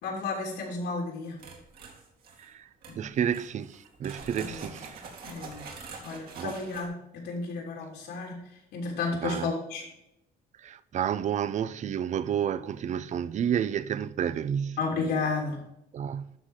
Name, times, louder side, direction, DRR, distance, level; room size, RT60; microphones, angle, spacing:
voice 1, 0.0-1.4 2.9-3.0 4.4-4.8 5.2-5.6 6.0-8.4 8.7-9.8 14.8-15.6, left 4 dB, 75° left, 3.1 m, -32 dB
sound 1, 1.4-2.5 2.8-3.0 3.3-6.9, right 4 dB, 65° right, 2.4 m, -45 dB
voice 2, 3.0-5.1 6.4-6.5 9.2-9.5 10.6-14.8 15.9-16.3, right 9 dB, 45° right, 0.6 m, -30 dB
12.0 x 4.1 x 4.9 m
cardioid pair, 110°, 17 cm